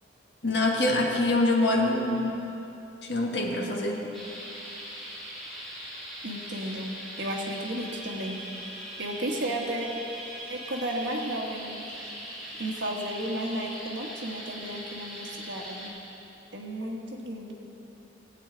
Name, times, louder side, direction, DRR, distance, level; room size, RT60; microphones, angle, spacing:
voice 1, 0.4-2.4 3.0-4.0, left 2 dB, 65° left, -1 dB, 1.5 m, -25 dB
sound 1, 4.1-15.9, equal, ahead, 2.9 m, -41 dB
voice 2, 6.2-8.4 9.0-9.9 10.5-12.1 12.6-16.0 16.5-17.5, right 1 dB, 70° right, 0 dB, 1.4 m, -33 dB
17.5 x 8.7 x 3.9 m, 3.0 s
head